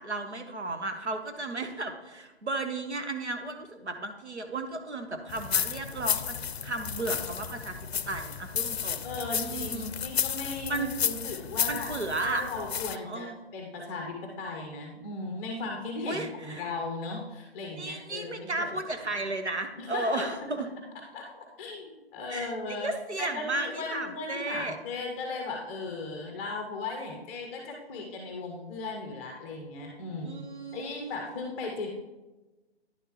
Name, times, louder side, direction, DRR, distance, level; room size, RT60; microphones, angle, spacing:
voice 1, 0.0-7.8 8.1-9.1 9.4-9.9 10.7-10.9 11.7-12.4 13.0-13.4 16.1-16.7 17.7-20.7 22.3-24.8 30.2-31.0, right 2 dB, 90° right, 6 dB, 1.1 m, -34 dB
sound 1, 5.3-13.0, left 8 dB, 65° left, 0.5 m, -32 dB
voice 2, 9.0-11.9 12.2-18.7 19.8-20.5 21.1-22.9 23.2-30.4 30.7-31.9, left 3 dB, 10° left, 1 dB, 0.6 m, -37 dB
10.0 x 6.7 x 3.0 m, 1.1 s
figure-of-eight pair, 140°, 33 cm